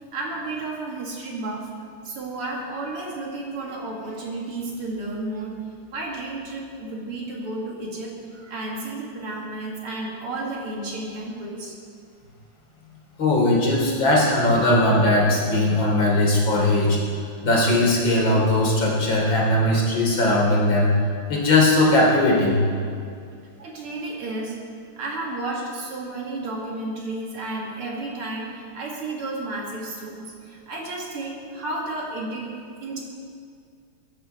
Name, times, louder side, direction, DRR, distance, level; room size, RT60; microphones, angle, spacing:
voice 1, 0.1-1.7 2.0-5.6 5.9-11.8 23.6-24.6 25.0-32.5 32.8-33.0, right 2 dB, 85° right, -2 dB, 3.4 m, -32 dB
voice 2, 13.2-17.0 17.4-20.9 21.3-22.6, left 1 dB, 60° left, -3 dB, 3.9 m, -19 dB
21.5 x 11.0 x 4.5 m, 2.2 s
omnidirectional pair, 2.4 m